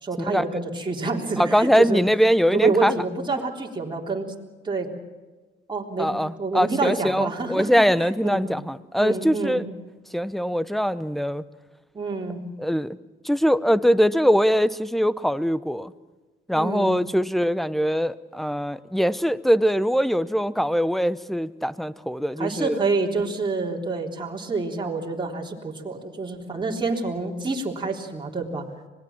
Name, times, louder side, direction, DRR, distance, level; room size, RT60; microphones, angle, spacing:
voice 1, 0.0-2.0 2.5-4.3 4.6-4.9 5.7-7.8 8.2-8.4 9.0-9.7 11.9-12.4 16.5-16.9 22.4-28.6, right 3 dB, 25° right, -1 dB, 3.6 m, -27 dB
voice 2, 1.4-3.0 6.0-9.6 10.1-11.4 12.6-13.0 13.2-15.9 16.5-22.8, equal, ahead, 16 dB, 0.8 m, -22 dB
25.5 x 19.5 x 7.3 m, 1.3 s
cardioid pair, 90°, 20 cm